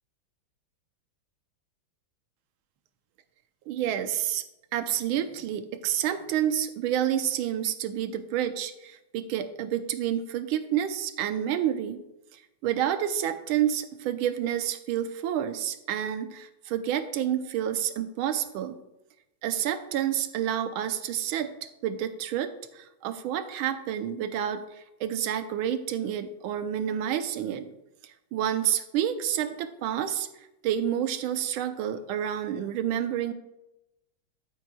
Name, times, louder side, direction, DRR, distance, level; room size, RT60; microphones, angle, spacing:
voice 1, 3.7-4.4 4.7-12.0 12.3-18.8 19.4-21.5 21.8-27.7 28.3-30.3 30.6-33.3, right 10 dB, 90° right, 9 dB, 1.5 m, -29 dB
14.0 x 7.3 x 2.3 m, 0.91 s
omnidirectional pair, 2.2 m